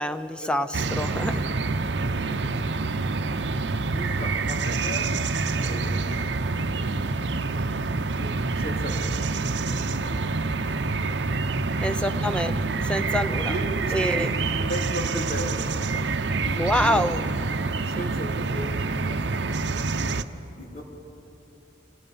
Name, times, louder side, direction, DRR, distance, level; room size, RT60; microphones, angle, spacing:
voice 1, 0.0-1.4 11.8-12.5 12.9-13.5 13.9-14.3 16.6-17.2, equal, 5° left, 10 dB, 0.7 m, -26 dB
sound 1, 0.7-20.2, right 3 dB, 65° right, 0.8 m, -27 dB
voice 2, 1.2-2.7 3.5-5.1 5.6-7.5 8.0-11.2 11.8-12.4 13.5-15.9 16.4-17.1 17.8-20.8, equal, 55° left, -1 dB, 3.9 m, -38 dB
28.0 x 27.0 x 5.6 m, 3.0 s
head